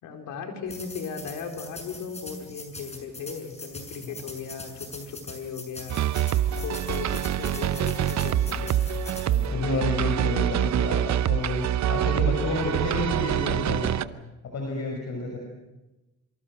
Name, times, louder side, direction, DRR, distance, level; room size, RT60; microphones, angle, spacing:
voice 1, 0.0-6.0 6.6-8.8, left 5 dB, 85° left, 4 dB, 4.5 m, -37 dB
sound 1, 0.7-9.5, left 2 dB, 20° left, 6.7 m, -43 dB
sound 2, 5.9-14.0, right 10 dB, 65° right, 0.9 m, -25 dB
voice 2, 9.2-14.0 14.4-15.4, left 2 dB, 65° left, 1 dB, 6.4 m, -30 dB
27.5 x 24.5 x 6.5 m, 1.0 s
cardioid pair, 90°, 30 cm